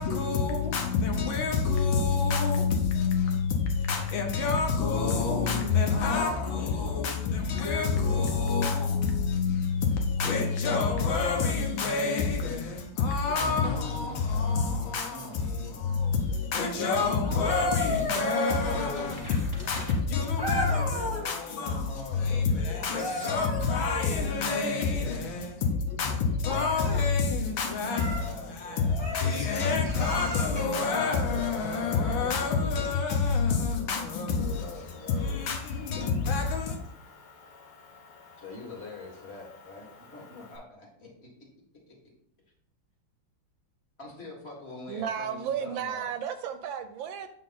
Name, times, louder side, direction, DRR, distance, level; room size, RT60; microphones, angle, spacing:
voice 1, 0.0-34.6 35.1-36.8, left 5 dB, 75° left, 1.7 m, -27 dB
voice 2, 6.0-9.4 13.4-16.0 20.5-23.7 27.8-29.3 34.3-35.5 38.4-41.3 41.9-42.0 44.0-46.1, left 2 dB, 30° left, 1.8 m, -44 dB
sound 1, 12.6-17.6 17.9-20.1, right 1 dB, 10° left, 1.6 m, -47 dB
sound 2, 17.2-19.2 20.4-21.3 22.7-24.4 26.4-27.1 27.9-28.3 29.0-30.8 32.6-32.8, equal, 15° right, 1.1 m, -34 dB
Motor vehicle (road) / Engine, 34.3-40.6, left 4 dB, 90° left, 2.5 m, -53 dB
voice 3, 44.9-47.3, right 8 dB, 80° right, 1.3 m, -33 dB
7.7 x 3.8 x 4.0 m
omnidirectional pair, 2.2 m